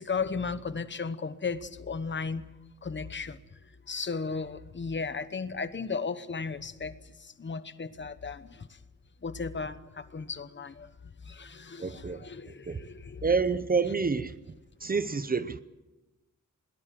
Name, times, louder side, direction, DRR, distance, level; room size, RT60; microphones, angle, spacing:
voice 1, 0.0-2.4 2.8-3.4 3.9-8.7 9.2-10.9 11.2-13.2, left 5 dB, 35° left, 1.1 m, -35 dB
voice 2, 11.8-12.2 12.7-12.8 13.2-14.3 14.8-15.6, right 5 dB, 30° right, 0.7 m, -28 dB
21.5 x 18.5 x 7.6 m
wide cardioid pair, 165°, 31 cm